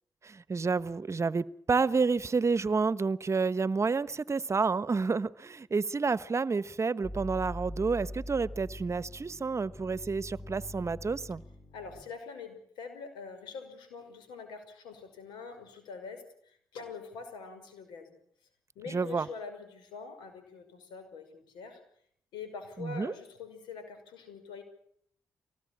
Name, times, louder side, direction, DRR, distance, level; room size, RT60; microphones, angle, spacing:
voice 1, 0.2-11.4 18.9-19.3 22.8-23.1, right 4 dB, 40° right, 17 dB, 1.0 m, -29 dB
sound 1, 7.0-12.0, left 1 dB, 20° left, 2.9 m, -43 dB
voice 2, 11.7-18.2 18.8-21.8 22.3-24.6, left 5 dB, 90° left, 9 dB, 5.7 m, -44 dB
24.5 x 19.0 x 8.6 m, 0.66 s
supercardioid pair, 55°, 8 cm